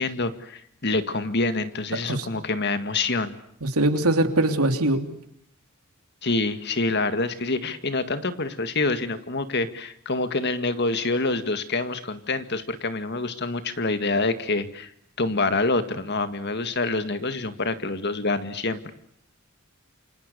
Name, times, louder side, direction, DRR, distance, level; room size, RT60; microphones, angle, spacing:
voice 1, 0.0-3.3 6.2-14.9 15.2-18.9, left 3 dB, 50° left, 10 dB, 2.0 m, -26 dB
voice 2, 3.6-5.0, right 2 dB, 85° right, 6 dB, 3.4 m, -22 dB
29.5 x 26.0 x 6.9 m, 0.72 s
head